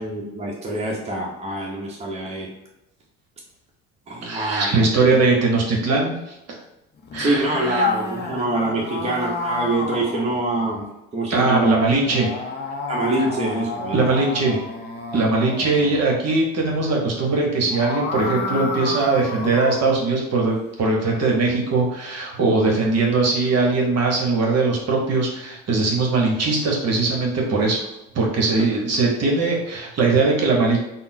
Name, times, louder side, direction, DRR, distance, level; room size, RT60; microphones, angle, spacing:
voice 1, 0.0-2.5 4.1-4.7 7.2-10.8 11.1-11.8 12.9-14.2, right 1 dB, 15° right, -2 dB, 0.7 m, -24 dB
voice 2, 4.2-6.1 6.5-6.6 7.1-7.9 11.3-12.3 13.9-14.6 15.1-27.8 28.1-30.8, right 3 dB, 45° right, 0 dB, 0.9 m, -20 dB
sound 1, 7.0-10.9 11.9-16.1 17.5-20.0, left 3 dB, 30° left, 0.5 m, -31 dB
3.6 x 2.0 x 2.6 m, 0.90 s
hypercardioid pair, 65°, 37 cm